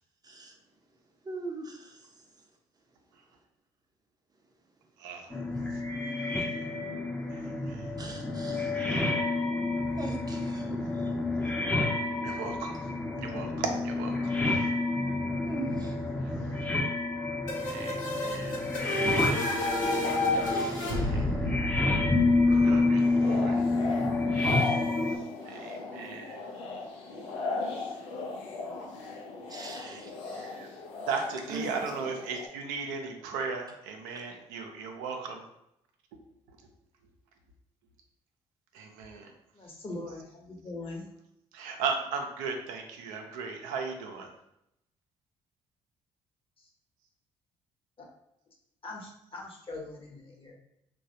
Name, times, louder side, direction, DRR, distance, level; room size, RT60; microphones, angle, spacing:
voice 1, 0.2-0.6 1.2-2.4 8.0-8.7 10.0-11.1 15.4-16.0 20.4-21.4 22.5-23.1 29.5-30.2 31.5-31.7 34.1-34.2, right 3 dB, 25° right, 2 dB, 0.6 m, -41 dB
voice 2, 5.0-5.3 7.3-8.0 8.5-9.0 11.4-11.6 12.2-12.8 13.2-14.7 16.7-16.8 17.6-18.6 20.9-21.7 22.6-23.6 25.4-26.4 29.8-30.7 31.1-35.4 38.7-39.3 41.5-44.3, right 5 dB, 75° right, 3 dB, 0.5 m, -37 dB
sound 1, 5.3-25.2, left 2 dB, 10° left, 0.6 m, -29 dB
sound 2, 17.5-23.1, left 1 dB, 65° left, 0.9 m, -31 dB
sound 3, 23.0-32.5, left 3 dB, 80° left, 0.4 m, -37 dB
voice 3, 39.5-41.1 46.6-46.7 48.8-50.5, left 2 dB, 40° left, 0 dB, 1.0 m, -41 dB
3.1 x 2.2 x 2.7 m, 0.79 s
hypercardioid pair, 45°, 15 cm